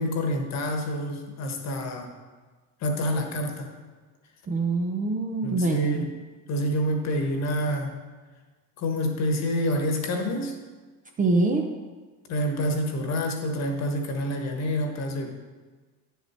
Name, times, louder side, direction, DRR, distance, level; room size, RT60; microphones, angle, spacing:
voice 1, 0.0-2.1 2.8-3.7 5.4-6.1 6.5-7.9 8.8-10.5 12.3-15.3, equal, 40° left, 3 dB, 1.4 m, -27 dB
voice 2, 4.5-6.1 11.2-11.7, right 3 dB, 20° right, 2 dB, 0.7 m, -24 dB
9.8 x 7.2 x 4.4 m, 1.3 s
supercardioid pair, 135°, 41 cm